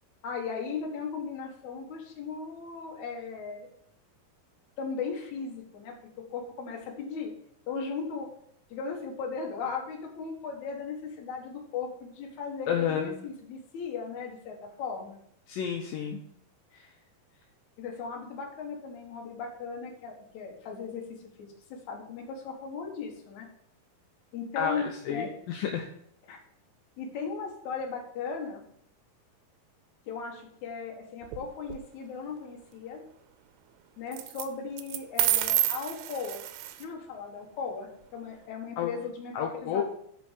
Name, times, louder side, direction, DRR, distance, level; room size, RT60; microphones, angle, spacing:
voice 1, 0.2-3.7 4.8-5.9 6.3-7.3 7.7-8.3 8.7-15.2 17.8-21.0 21.4-23.5 24.3-25.3 26.3-26.4 27.0-28.6 30.1-33.0 34.0-36.4 36.8-39.8, left 5 dB, 60° left, 0 dB, 2.5 m, -37 dB
voice 2, 12.7-13.3 15.5-16.2 16.7-16.9 24.6-25.9 38.8-38.9 39.3-39.8, left 8 dB, 80° left, 2 dB, 2.2 m, -31 dB
sound 1, 31.2-31.8 34.1-34.5 34.8-36.8, right 13 dB, 85° right, 2.5 m, -29 dB
10.5 x 4.3 x 5.1 m, 0.68 s
omnidirectional pair, 4.3 m